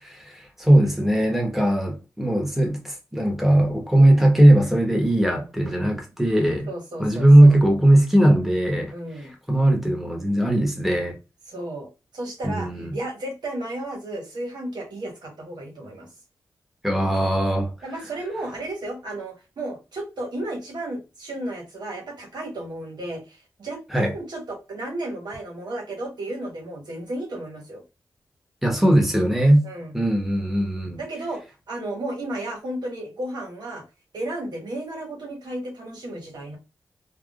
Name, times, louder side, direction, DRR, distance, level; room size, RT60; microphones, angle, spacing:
voice 1, 0.0-6.7 7.0-8.9 9.5-11.2 12.4-13.0 16.8-17.7 23.9-24.1 28.6-29.6 29.9-31.0, right 1 dB, 5° right, 1.3 m, -19 dB
voice 2, 6.7-7.6 8.9-9.3 11.5-16.1 17.8-27.8 29.6-30.0 31.0-31.4 31.7-33.8 34.1-36.6, right 1 dB, 75° right, 1.2 m, -33 dB
3.5 x 2.3 x 2.4 m
cardioid pair, 40°, 7 cm